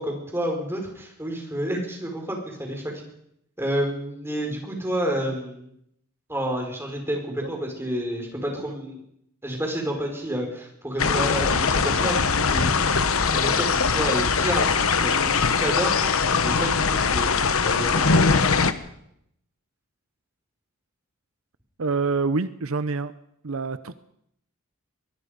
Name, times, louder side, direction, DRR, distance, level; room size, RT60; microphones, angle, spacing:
voice 1, 0.0-3.0 3.6-5.7 6.3-9.0 9.4-12.9 13.2-15.9 16.4-18.6, equal, 10° right, 1 dB, 5.3 m, -30 dB
sound 1, 11.0-18.7, left 5 dB, 75° left, 1.2 m, -21 dB
voice 2, 21.8-23.1 23.4-23.9, right 4 dB, 70° right, 13 dB, 0.8 m, -26 dB
23.0 x 21.5 x 5.3 m, 0.76 s
head